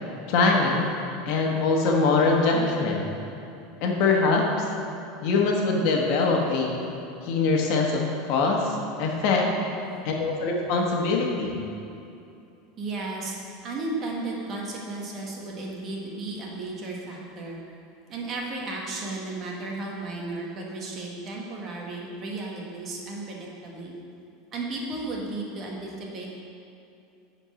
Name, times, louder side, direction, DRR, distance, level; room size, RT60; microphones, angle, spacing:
voice 1, 0.3-0.9 1.2-3.0 3.8-4.5 5.2-6.8 7.2-9.5 10.0-11.6, left 3 dB, 60° left, 0 dB, 1.3 m, -23 dB
voice 2, 12.8-13.4 13.6-17.6 18.1-23.9 24.5-26.3, right 2 dB, 35° right, -2 dB, 1.5 m, -34 dB
8.8 x 4.5 x 6.4 m, 2.7 s
supercardioid pair, 140°, 0 cm